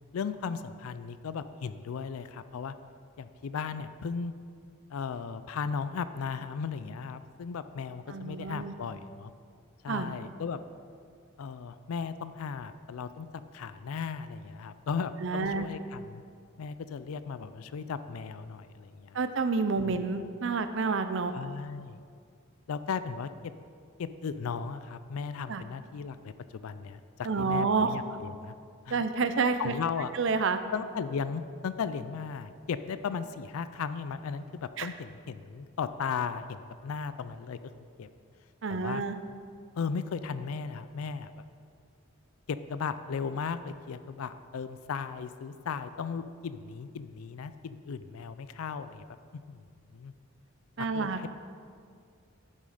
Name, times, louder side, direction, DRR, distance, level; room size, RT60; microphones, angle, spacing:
voice 1, 0.1-2.7 3.2-4.3 4.9-9.3 9.8-10.6 11.4-13.3 13.5-16.2 16.6-19.2 19.8-20.0 21.3-22.0 22.7-23.3 24.0-28.5 28.9-29.0 29.6-30.1 30.7-37.6 38.0-38.1 38.7-39.0 39.8-41.3 42.5-49.1 49.3-49.6 49.9-50.1 50.8-51.3, left 6 dB, 85° left, 13 dB, 0.4 m, -36 dB
voice 2, 8.1-8.7 9.9-10.1 15.2-15.7 19.1-21.3 25.5-25.6 27.2-28.0 28.9-29.7 30.1-30.6 34.8-34.9 38.6-39.2 50.8-51.3, right 4 dB, 60° right, 10 dB, 0.6 m, -29 dB
11.0 x 7.3 x 5.0 m, 2.3 s
head